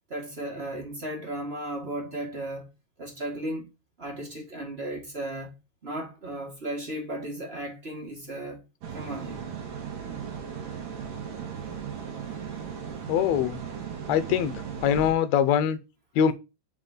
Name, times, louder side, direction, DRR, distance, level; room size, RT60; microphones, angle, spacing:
voice 1, 0.1-2.7 3.0-3.7 4.0-5.5 5.8-8.6 8.9-9.4 11.2-11.4 12.4-12.6, right 1 dB, 30° right, 1.3 m, -35 dB
sound 1, 8.8-15.1, right 7 dB, 85° right, 3.8 m, -37 dB
voice 2, 13.1-13.6 14.1-14.5 14.8-15.8 16.2-16.3, left 9 dB, 75° left, 1.8 m, -23 dB
7.2 x 4.1 x 6.5 m
omnidirectional pair, 3.8 m